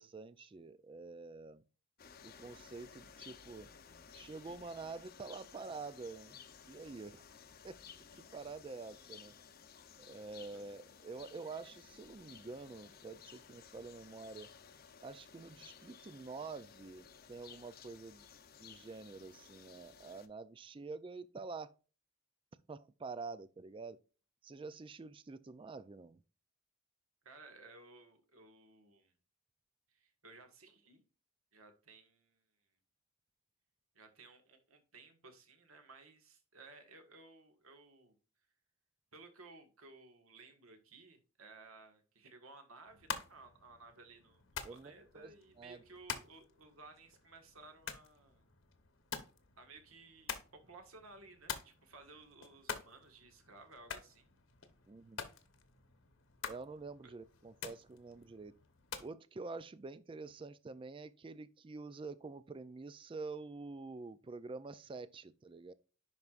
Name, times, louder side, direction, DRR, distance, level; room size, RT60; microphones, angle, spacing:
voice 1, 0.0-1.6 2.2-3.7 4.1-6.4 6.7-7.2 7.6-7.8 8.1-9.3 10.0-14.5 15.0-18.3 18.6-21.8 22.7-24.0 24.4-26.2 44.6-45.8 54.9-55.2 56.5-58.6 59.0-65.7, right 4 dB, 25° right, 0.3 m, -47 dB
sound 1, 2.0-20.3, left 7 dB, 45° left, 0.7 m, -57 dB
voice 2, 10.3-10.7 27.2-29.1 29.9-31.0 31.5-32.4 33.9-38.1 39.1-48.5 49.6-54.3 57.0-57.2, right 3 dB, 75° right, 1.7 m, -57 dB
sound 2, 42.9-59.1, left 6 dB, 60° left, 1.1 m, -48 dB
10.5 x 4.7 x 2.5 m
head